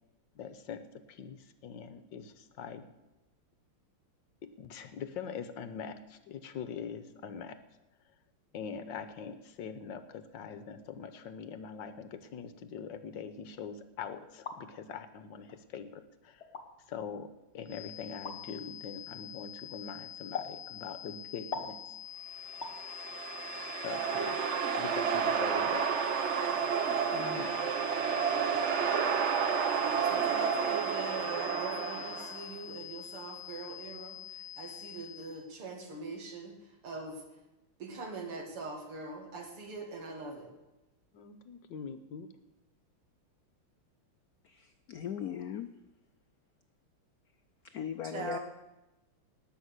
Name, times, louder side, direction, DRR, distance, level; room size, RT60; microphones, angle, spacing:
voice 1, 0.3-2.9 4.4-7.6 8.5-16.4 16.9-21.8 23.8-24.4 24.7-26.3 27.1-27.7 31.2-31.3 41.1-42.3, left 6 dB, 65° left, 10 dB, 1.4 m, -43 dB
sound 1, 14.2-14.6 15.5-15.6 16.4-16.7 18.2-18.4 20.3-20.6 21.5-21.8 22.6-22.8 24.1-24.2 24.7-24.9 25.2-25.3, left 5 dB, 35° left, 1.2 m, -39 dB
sound 2, 17.6-35.4, left 10 dB, 10° right, 6.6 m, -46 dB
sound 3, 22.6-32.5, right 7 dB, 75° right, 0.6 m, -31 dB
voice 2, 30.0-34.2 34.6-36.5 36.8-37.2 37.8-40.5 48.1-48.4, right 3 dB, 90° right, 2 dB, 3.2 m, -42 dB
voice 3, 44.4-45.7 47.6-48.4, left 9 dB, 85° left, 9 dB, 0.8 m, -38 dB
19.0 x 6.4 x 8.1 m, 1.0 s
omnidirectional pair, 2.4 m